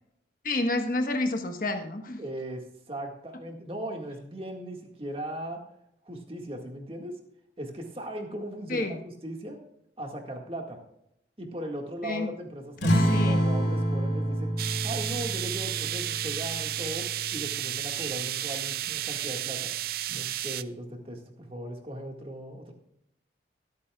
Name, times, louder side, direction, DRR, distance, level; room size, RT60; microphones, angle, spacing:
voice 1, 0.4-2.2 8.7-9.0 12.0-12.3 13.1-13.4, left 2 dB, 50° left, 5 dB, 1.2 m, -29 dB
voice 2, 2.2-5.6 6.0-7.2 7.6-9.6 10.0-10.8 11.4-19.7 20.1-22.7, right 1 dB, 30° right, 2 dB, 1.8 m, -38 dB
sound 1, 12.8-17.8, equal, 75° left, 3.7 m, -28 dB
sound 2, 14.6-20.6, right 13 dB, 50° right, 0.4 m, -32 dB
23.5 x 8.5 x 2.4 m, 0.78 s
head